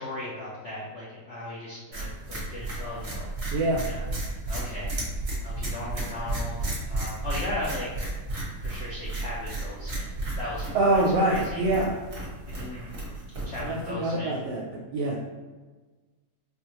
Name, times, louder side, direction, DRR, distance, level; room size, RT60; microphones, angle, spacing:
voice 1, 0.0-3.6 3.8-4.9 5.4-7.9 8.6-10.1 10.4-11.6 12.6-12.9 13.4-14.4, left 1 dB, 75° left, -6 dB, 0.6 m, -37 dB
sound 1, 1.9-13.9, right 2 dB, 40° right, 0.9 m, -33 dB
voice 2, 3.5-3.8 10.7-12.0 13.6-14.6 14.9-15.2, right 2 dB, 70° right, -4 dB, 1.1 m, -24 dB
4.3 x 2.4 x 2.9 m, 1.3 s
omnidirectional pair, 2.0 m